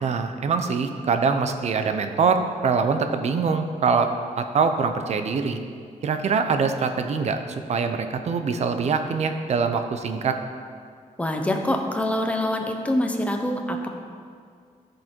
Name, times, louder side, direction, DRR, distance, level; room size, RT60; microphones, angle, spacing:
voice 1, 0.0-4.1 4.4-5.6 6.0-10.4, right 5 dB, 50° right, 7 dB, 0.7 m, -24 dB
voice 2, 11.2-13.9, left 1 dB, 10° left, 3 dB, 0.8 m, -25 dB
14.0 x 5.4 x 4.5 m, 2.2 s
wide cardioid pair, 155°, 14 cm